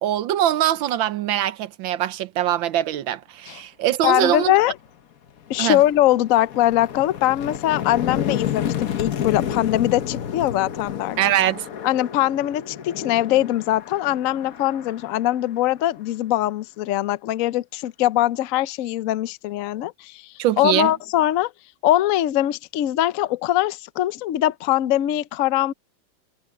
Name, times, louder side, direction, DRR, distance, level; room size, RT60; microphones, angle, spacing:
voice 1, 0.0-4.5 5.6-5.8 11.2-11.7 20.4-20.9, right 12 dB, 75° right, 1.5 m, -22 dB
voice 2, 4.0-4.7 5.5-11.2 11.8-21.5 21.8-25.7, left 14 dB, 80° left, 0.7 m, -22 dB
sound 1, 4.7-4.9 5.3-16.1, left 9 dB, 50° left, 1.3 m, -30 dB
omnidirectional pair, 2.2 m